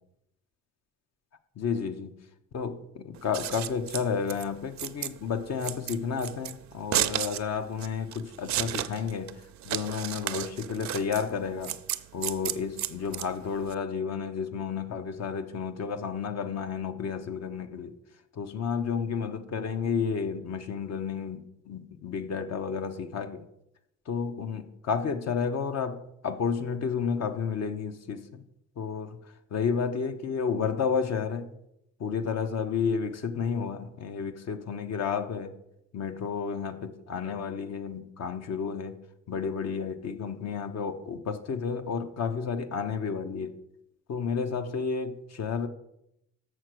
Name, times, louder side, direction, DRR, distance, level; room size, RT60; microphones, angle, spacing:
voice 1, 1.6-2.1 2.5-11.8 12.1-18.0 18.3-23.5 24.1-28.4 28.8-31.5 32.0-35.5 35.9-39.0 39.3-43.6 44.1-45.7, left 6 dB, 60° left, 0.9 m, -31 dB
Scissors, 3.1-13.7, right 12 dB, 65° right, 0.5 m, -33 dB
6.7 x 6.4 x 6.2 m
cardioid pair, 90°, 30 cm